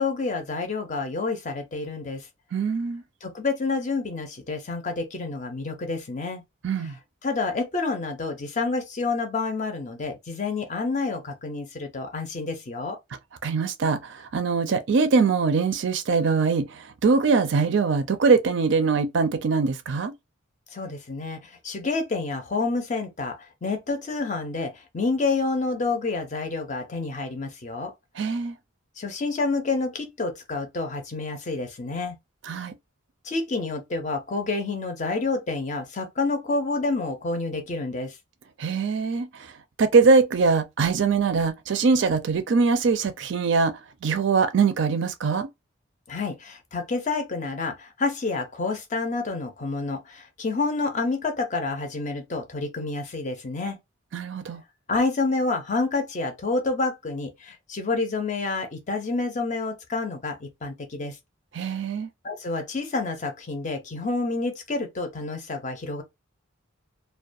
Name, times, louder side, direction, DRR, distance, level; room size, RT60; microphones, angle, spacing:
voice 1, 0.0-2.3 3.2-6.4 6.8-6.9 7.2-13.0 20.7-27.9 29.0-32.2 33.2-38.1 46.1-53.8 54.9-61.2 62.2-66.0, left 3 dB, 35° left, 0.5 m, -28 dB
voice 2, 2.5-3.0 6.6-6.9 13.4-20.1 28.2-28.6 32.5-32.7 38.6-39.3 39.8-45.5 54.1-54.6 61.5-62.1, right 4 dB, 55° right, 0.4 m, -22 dB
2.3 x 2.2 x 2.5 m
head